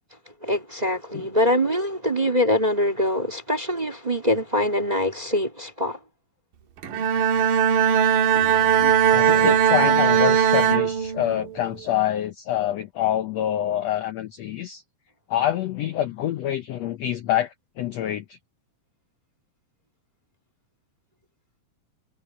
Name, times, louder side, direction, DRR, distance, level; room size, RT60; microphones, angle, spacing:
voice 1, 0.4-6.0, left 1 dB, 15° right, 2.0 m, -23 dB
Bowed string instrument, 6.8-11.5, right 8 dB, 70° right, 2.9 m, -19 dB
voice 2, 8.6-14.8 15.3-18.4, left 11 dB, 75° left, 1.5 m, -26 dB
omnidirectional pair, 4.2 m